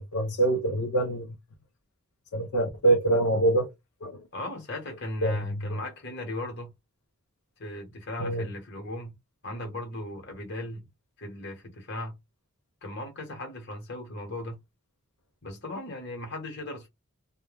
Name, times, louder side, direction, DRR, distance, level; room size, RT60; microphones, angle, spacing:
voice 1, 0.0-1.4 2.3-3.7 4.0-4.3 5.2-5.8 8.2-8.5, right 2 dB, 90° left, 0.5 m, -25 dB
voice 2, 4.3-6.7 7.6-9.2 9.4-10.8 11.2-12.2 12.8-14.6 15.4-16.9, left 1 dB, 50° left, 1.0 m, -37 dB
2.1 x 2.1 x 3.2 m
head